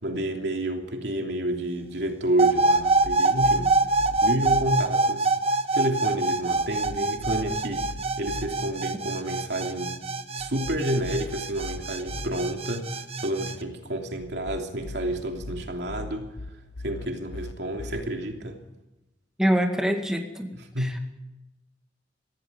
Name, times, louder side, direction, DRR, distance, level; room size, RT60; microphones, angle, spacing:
voice 1, 0.0-3.7 4.2-5.3 5.7-7.9 8.2-10.0 10.3-16.3 16.8-18.6 20.5-20.9, right 1 dB, 60° right, 3 dB, 3.2 m, -29 dB
sound 1, 2.4-13.5, right 3 dB, 30° right, 1.2 m, -25 dB
sound 2, 2.8-4.7 6.6-8.5 10.4-12.3 14.2-18.0, left 2 dB, 90° left, 1.2 m, -40 dB
voice 2, 19.4-20.5 20.8-21.0, equal, 5° right, 3 dB, 2.1 m, -25 dB
25.0 x 16.5 x 9.9 m, 1.0 s
head